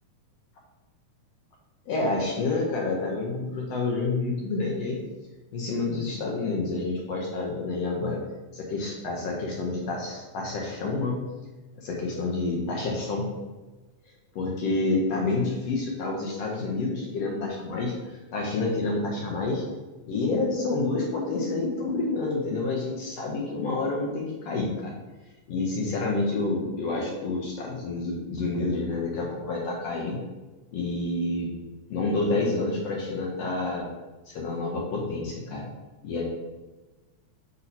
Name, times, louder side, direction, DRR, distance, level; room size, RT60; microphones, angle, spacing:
voice 1, 1.9-5.0 5.5-8.2 8.5-11.2 11.8-13.3 14.3-19.6 20.1-24.9 25.5-30.2 30.7-31.5 31.9-33.9 34.3-35.7 36.0-36.2, left 3 dB, 65° left, -2 dB, 1.7 m, -28 dB
6.6 x 2.9 x 5.4 m, 1.2 s
omnidirectional pair, 3.6 m